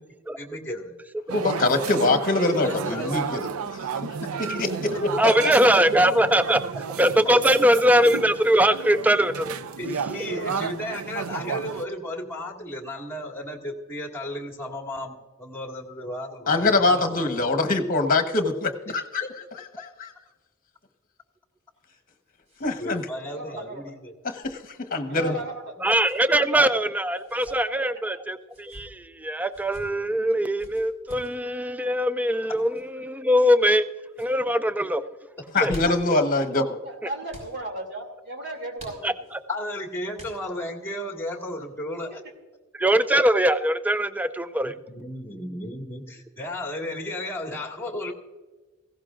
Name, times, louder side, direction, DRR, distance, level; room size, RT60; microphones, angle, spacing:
voice 1, 0.4-1.0 2.0-2.1 2.4-3.3 5.1-5.2 9.8-17.5 19.2-19.3 22.8-24.1 25.1-25.4 25.8-25.9 26.5-26.7 35.6-35.7 39.5-42.2 44.6-48.1, left 1 dB, 10° left, 1 dB, 2.0 m, -34 dB
voice 2, 1.3-3.5 4.0-4.1 4.6-5.1 5.4-5.5 16.5-19.2 20.0-20.1 22.6-23.0 24.2-25.3 35.5-36.8, left 3 dB, 40° left, 6 dB, 1.2 m, -23 dB
sound 1, 1.3-11.9, right 6 dB, 80° right, 0.5 m, -32 dB
voice 3, 5.2-6.6 7.0-9.5 25.8-33.8 34.2-35.0 35.6-35.8 39.0-39.1 42.7-44.7, equal, 5° right, 12 dB, 0.3 m, -21 dB
sound 2, 21.7-23.1 23.4-23.5 24.4-24.7 25.8-26.2 27.1-27.6 28.4-28.9 29.5-29.8 30.6-31.3 32.5-32.8 33.5-33.8 34.1-34.3 35.4-36.2 37.3-37.5 38.8-39.4 40.1-40.7, equal, 35° right, 4.6 m, -45 dB
voice 4, 23.3-23.9 25.1-25.7 36.8-39.3, right 1 dB, 55° right, 3 dB, 2.8 m, -36 dB
18.0 x 16.0 x 2.5 m, 1.2 s
head